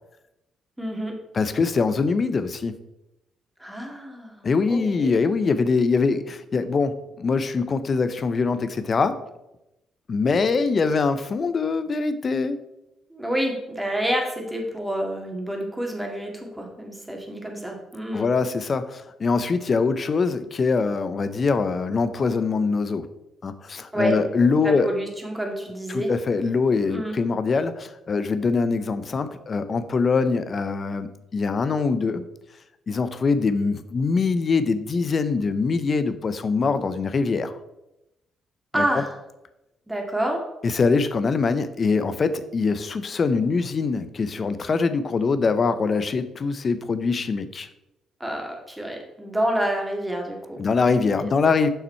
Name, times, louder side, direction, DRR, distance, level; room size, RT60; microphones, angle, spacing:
voice 1, 0.8-1.1 3.6-5.1 13.1-18.3 23.9-24.2 24.6-26.1 26.8-27.1 38.7-39.1 39.9-40.4 48.2-50.9 51.2-51.3, right 1 dB, 10° right, 1 dB, 2.0 m, -28 dB
voice 2, 1.3-2.7 4.4-9.2 10.1-12.6 18.1-23.1 23.4-24.9 25.9-32.2 32.9-37.5 38.8-38.9 40.6-47.7 50.6-51.7, left 4 dB, 40° left, 12 dB, 0.7 m, -23 dB
6.9 x 5.9 x 4.5 m, 0.91 s
cardioid pair, 90°, 0 cm